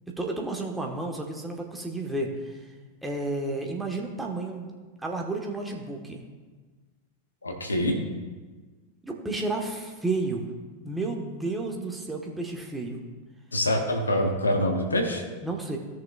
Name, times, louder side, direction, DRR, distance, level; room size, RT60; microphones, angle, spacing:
voice 1, 0.2-2.6 3.0-4.7 5.0-6.2 9.0-10.5 10.8-13.0 15.4-15.8, right 2 dB, 5° right, 0 dB, 1.4 m, -31 dB
voice 2, 7.4-8.0 13.5-15.2, left 1 dB, 80° left, 2 dB, 1.4 m, -25 dB
17.0 x 6.3 x 2.4 m, 1.3 s
figure-of-eight pair, 90°, 0 cm